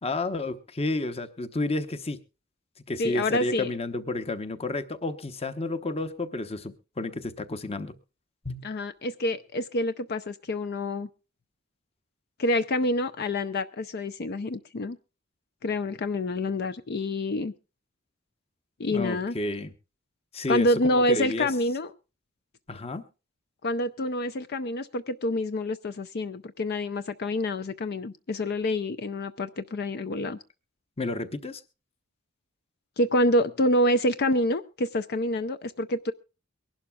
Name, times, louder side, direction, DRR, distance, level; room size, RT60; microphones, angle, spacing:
voice 1, 0.0-2.2 2.9-7.9 8.4-8.7 18.9-19.7 20.3-21.5 22.7-23.0 31.0-31.6, left 2 dB, 30° left, 11 dB, 0.9 m, -31 dB
voice 2, 3.0-3.7 8.6-11.1 12.4-15.0 15.6-17.5 18.8-19.3 20.5-21.9 23.6-30.4 33.0-36.1, left 1 dB, 50° left, 11 dB, 0.5 m, -27 dB
23.5 x 11.5 x 2.3 m, 0.32 s
head